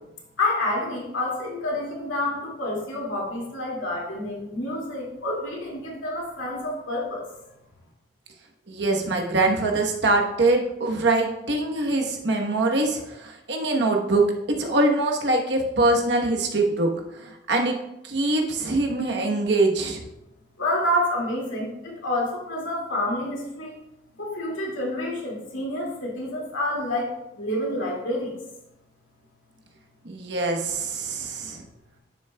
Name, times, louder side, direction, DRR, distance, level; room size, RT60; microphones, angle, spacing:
voice 1, 0.4-7.3 20.6-23.8 24.2-28.3, left 1 dB, 85° left, -2 dB, 2.3 m, -28 dB
voice 2, 8.7-14.2 14.6-16.9 17.5-17.8 18.0-20.0 30.0-31.6, right 2 dB, 60° right, 1 dB, 1.1 m, -23 dB
11.0 x 6.2 x 2.3 m, 0.90 s
head